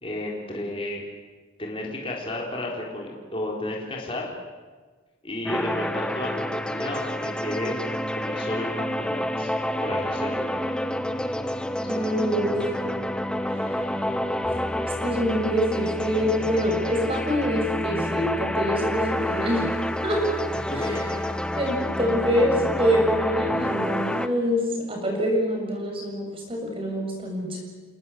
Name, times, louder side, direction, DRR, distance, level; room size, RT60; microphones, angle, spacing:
voice 1, 0.0-1.0 1.6-4.3 5.2-9.5 9.8-10.7 11.8-12.3 20.6-21.5, left 1 dB, 25° left, -2 dB, 4.0 m, -33 dB
sound 1, 5.5-24.3, left 1 dB, 5° left, 0.9 m, -28 dB
voice 2, 11.9-12.8 13.6-13.8 15.0-19.8 20.0-20.2 20.7-21.0 21.5-27.6, equal, 25° right, 1 dB, 7.1 m, -25 dB
29.5 x 19.0 x 8.6 m, 1.4 s
head